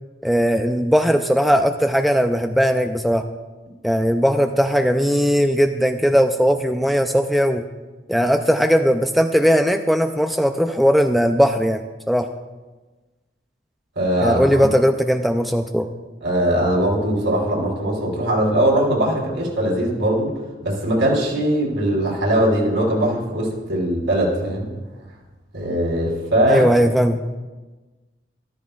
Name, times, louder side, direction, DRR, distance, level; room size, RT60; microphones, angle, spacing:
voice 1, 0.2-3.3 3.8-7.6 8.1-12.3 14.2-15.9 26.5-27.2, equal, ahead, 6 dB, 0.3 m, -18 dB
voice 2, 14.0-14.7 16.2-20.3 20.6-24.7 25.5-26.7, right 1 dB, 85° right, -3 dB, 4.0 m, -20 dB
13.5 x 13.0 x 2.4 m, 1.2 s
head